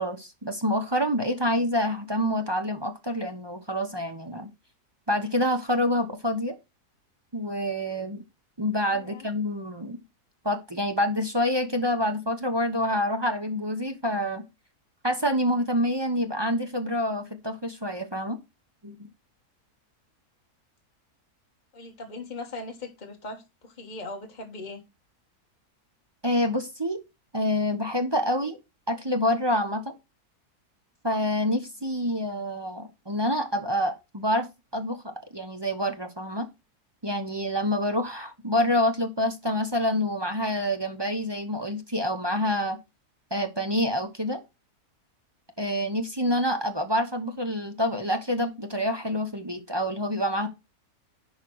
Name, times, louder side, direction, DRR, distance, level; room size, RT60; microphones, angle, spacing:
voice 1, 0.0-4.5 5.1-6.6 7.3-8.2 8.6-10.0 10.4-14.4 15.0-18.4 18.8-19.1 26.2-27.0 27.3-28.6 28.9-29.9 31.0-34.5 34.7-36.5 37.0-42.8 43.3-44.4 45.6-50.5, left 1 dB, 20° right, 0.8 m, -27 dB
voice 2, 8.9-9.3 21.7-24.8, left 2 dB, 30° left, 1.6 m, -39 dB
11.0 x 4.6 x 4.7 m
omnidirectional pair, 1.7 m